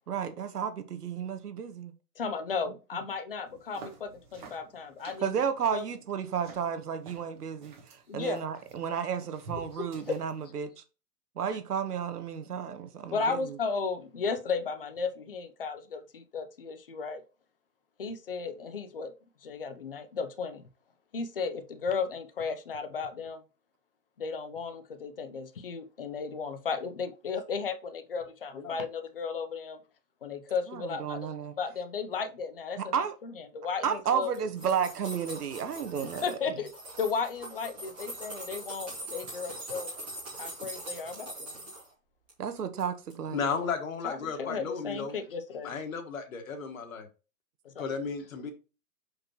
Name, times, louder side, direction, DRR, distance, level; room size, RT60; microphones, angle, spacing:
voice 1, 0.1-1.9 5.2-10.7 11.4-13.6 30.7-31.5 32.9-33.1 33.8-36.2 42.4-43.4, right 7 dB, 85° right, 1.3 m, -32 dB
voice 2, 2.2-5.3 5.7-5.8 8.1-8.4 9.8-10.2 12.5-12.6 13.1-17.2 18.0-19.1 19.4-20.6 21.1-23.4 24.2-29.8 30.2-32.9 33.2-34.5 36.0-36.7 37.0-39.9 40.4-41.6 44.0-45.7 47.6-47.7, left 5 dB, 40° left, 0.6 m, -35 dB
sound 1, 3.5-10.4, right 4 dB, 30° right, 1.3 m, -51 dB
sound 2, 34.2-36.4 36.7-41.9 42.3-42.8 43.1-43.2, right 1 dB, 5° right, 0.8 m, -42 dB
voice 3, 43.3-45.1 45.6-47.1 47.8-48.5, left 5 dB, 60° left, 1.5 m, -34 dB
6.0 x 5.2 x 3.0 m
hypercardioid pair, 180°, 45 cm